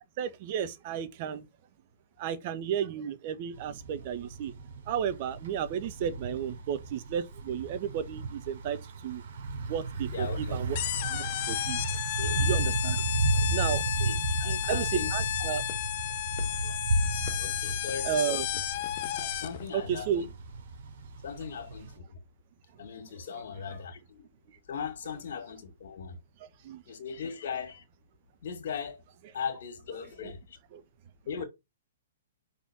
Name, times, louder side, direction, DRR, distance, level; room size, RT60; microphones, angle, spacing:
voice 1, 0.2-1.5 2.2-4.5 4.9-8.8 9.0-9.2 9.7-10.8 11.1-11.8 12.4-13.0 13.5-13.8 14.4-15.6 16.5-16.8 17.2-17.3 18.0-18.4 19.7-20.3 26.4-26.8 30.7-30.8, right 8 dB, 45° right, 1.1 m, -33 dB
Thunder / Bicycle, 3.5-21.9, right 2 dB, 65° right, 3.5 m, -34 dB
voice 2, 10.0-10.6 11.9-12.4 13.3-13.5 14.0-15.1 15.4-15.5 17.4-18.6 19.1-20.3 21.2-22.2 22.8-24.3 24.7-26.2 26.9-27.8 28.4-29.0 29.3-30.6 31.3-31.4, left 6 dB, 65° left, 2.1 m, -39 dB
sound 1, 10.7-19.7, left 13 dB, 45° left, 0.7 m, -33 dB
5.5 x 4.5 x 6.2 m
hypercardioid pair, 135°, 0 cm